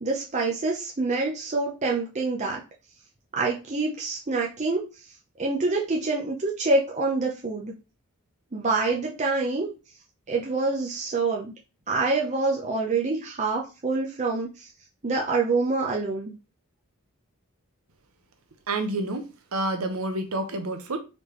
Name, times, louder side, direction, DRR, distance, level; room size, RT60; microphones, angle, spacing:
voice 1, 0.0-2.6 3.3-4.8 5.4-7.7 8.5-9.7 10.3-11.5 11.9-14.7 15.0-16.3, right 3 dB, 35° right, 0.6 m, -26 dB
voice 2, 18.7-21.0, right 2 dB, 80° right, 0.8 m, -29 dB
4.1 x 3.3 x 3.1 m
head